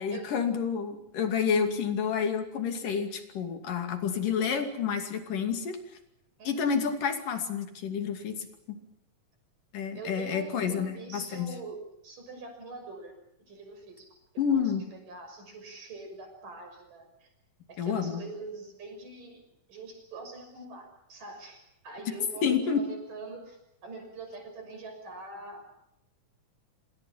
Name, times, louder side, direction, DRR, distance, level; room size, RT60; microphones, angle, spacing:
voice 1, 0.0-5.8 6.5-8.8 9.7-11.5 14.4-14.8 17.8-18.2 22.4-22.9, left 6 dB, 85° left, 6 dB, 4.3 m, -29 dB
voice 2, 10.0-11.8 12.0-13.1 13.4-14.6 14.9-17.3 17.7-19.4 19.7-25.7, right 3 dB, 80° right, 5 dB, 7.7 m, -44 dB
27.0 x 26.5 x 5.7 m, 0.79 s
omnidirectional pair, 3.7 m